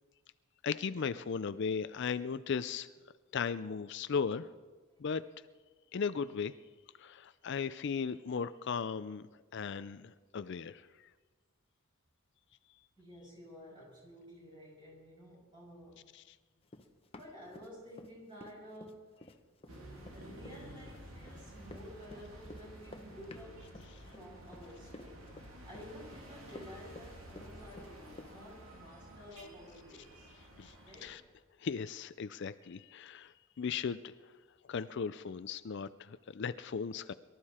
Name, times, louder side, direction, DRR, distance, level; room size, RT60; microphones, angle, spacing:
voice 1, 0.6-2.9 3.3-4.5 5.0-5.2 5.9-6.5 7.0-9.2 9.5-11.1 16.1-16.2 30.6-30.7 31.0-31.2 31.6-34.1 34.7-37.1, left 6 dB, 55° left, 14 dB, 0.4 m, -37 dB
voice 2, 13.0-16.0 17.2-19.0 20.1-23.7 24.0-30.3 30.8-31.2, equal, 25° right, -4 dB, 6.7 m, -52 dB
Run, 16.7-18.1 18.4-28.3, left 2 dB, 30° left, 1.0 m, -52 dB
sound 1, 19.7-31.1, right 1 dB, 75° right, 3.0 m, -52 dB
23.5 x 13.0 x 4.3 m, 1.3 s
head